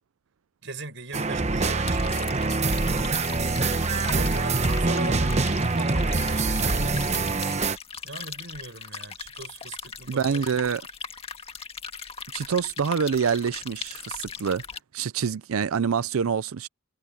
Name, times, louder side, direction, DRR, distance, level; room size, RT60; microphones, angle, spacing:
voice 1, 0.6-2.6 3.8-6.9 8.0-10.8, right 3 dB, 60° right, 6.4 m, -40 dB
sound 1, 1.1-7.8, right 3 dB, 35° right, 1.0 m, -24 dB
sound 2, 1.5-14.8, left 6 dB, 30° left, 1.7 m, -39 dB
voice 2, 10.1-10.8 12.3-14.6 14.9-16.7, right 6 dB, 90° right, 0.5 m, -26 dB
head